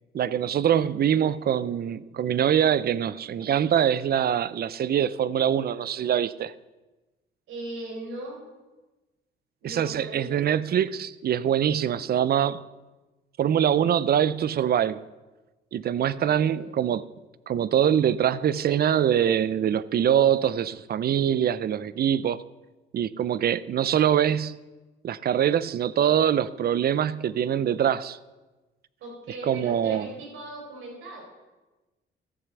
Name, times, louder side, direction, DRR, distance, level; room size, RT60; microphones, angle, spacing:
voice 1, 0.1-6.5 9.6-12.6 13.4-15.0 15.7-17.1 17.5-22.4 22.9-24.6 25.0-28.2 29.5-30.1, right 9 dB, 50° right, 0.6 m, -24 dB
voice 2, 7.5-8.4 9.6-10.6 16.2-16.7 29.0-31.2, right 2 dB, 85° right, 4.8 m, -39 dB
13.5 x 7.5 x 7.1 m
cardioid pair, 90°, 20 cm